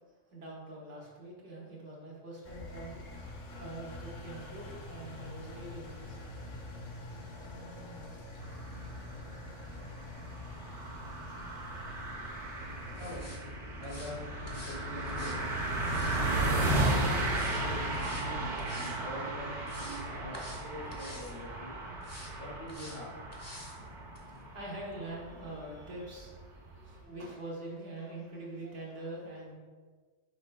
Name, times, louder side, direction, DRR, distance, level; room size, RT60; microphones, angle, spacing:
voice 1, 0.3-3.0 3.6-6.3 7.2-8.3 9.1-9.4 11.0-11.9 24.2-29.5, right 2 dB, 80° right, -4 dB, 1.5 m, -45 dB
Engine, 2.4-13.2, left 2 dB, 50° left, 0.7 m, -46 dB
sound 1, 8.4-27.0, right 2 dB, 45° right, 0.8 m, -35 dB
sound 2, 13.0-13.4 13.8-14.1 14.5-14.8 15.1-16.2 16.6-17.0 17.3-17.6 17.9-18.3 18.6-19.0 19.4-20.0 20.3-20.6 20.9-21.3 22.0-22.3 22.7-23.0 23.3-23.8 24.1-24.2, left 1 dB, 20° left, 0.5 m, -48 dB
voice 2, 13.8-14.2 14.5-15.4 16.2-17.2 17.6-21.8 22.4-23.1, left 1 dB, 80° left, -6 dB, 2.1 m, -44 dB
6.0 x 4.0 x 2.2 m, 1.5 s
omnidirectional pair, 1.2 m